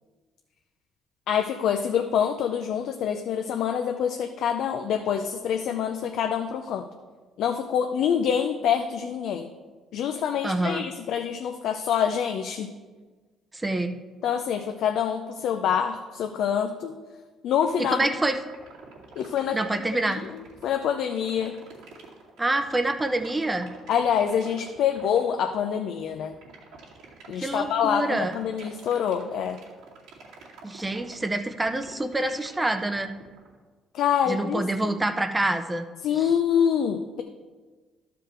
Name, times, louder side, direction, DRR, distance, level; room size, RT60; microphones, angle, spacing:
voice 1, 1.3-6.9 7.4-9.5 9.9-12.7 14.2-16.9 17.4-18.0 19.2-19.6 20.1-21.5 23.9-26.3 27.3-29.6 33.9-34.9 36.0-37.2, left 8 dB, 70° left, 5 dB, 0.5 m, -26 dB
voice 2, 10.4-10.9 13.5-13.9 17.8-18.4 19.5-20.2 22.4-23.7 27.4-28.4 30.6-33.1 34.3-35.8 36.1-36.3, right 2 dB, 15° right, 8 dB, 0.6 m, -26 dB
sound 1, 17.6-33.5, right 5 dB, 85° right, 2.4 m, -48 dB
12.5 x 5.1 x 4.5 m, 1.3 s
cardioid pair, 95°, 0 cm